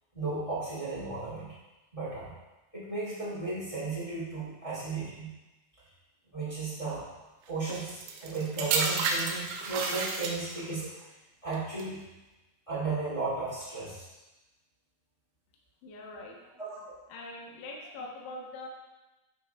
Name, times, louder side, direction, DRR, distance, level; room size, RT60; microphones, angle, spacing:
voice 1, 0.1-1.5 1.9-2.3 2.7-5.3 6.3-7.0 7.5-10.9 11.4-12.0 12.7-14.0 16.6-16.8, right 3 dB, 15° left, -8 dB, 1.0 m, -34 dB
sound 1, 7.7-10.7 11.5-11.8, right 4 dB, 80° right, 3.0 m, -31 dB
voice 2, 15.8-16.4 17.1-18.7, left 2 dB, 85° left, -2 dB, 3.8 m, -42 dB
11.0 x 3.8 x 4.6 m, 1.1 s
omnidirectional pair, 5.3 m